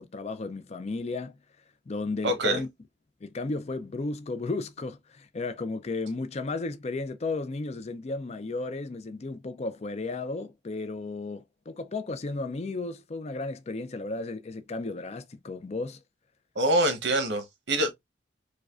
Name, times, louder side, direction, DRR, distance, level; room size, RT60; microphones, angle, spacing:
voice 1, 0.0-1.3 1.9-2.7 3.2-16.0, left 3 dB, 35° left, 0.4 m, -34 dB
voice 2, 2.2-2.6 16.6-17.9, right 1 dB, 70° right, 1.0 m, -25 dB
4.8 x 2.2 x 2.4 m
head